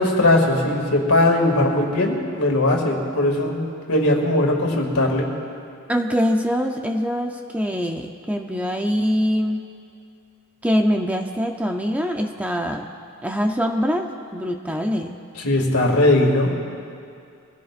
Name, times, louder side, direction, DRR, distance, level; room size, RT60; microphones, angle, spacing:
voice 1, 0.0-5.3 15.4-16.5, left 1 dB, 75° left, 0 dB, 2.3 m, -19 dB
voice 2, 5.9-9.6 10.6-12.8 13.2-15.2, equal, 5° right, 3 dB, 0.6 m, -23 dB
24.0 x 16.0 x 2.5 m, 2.4 s
head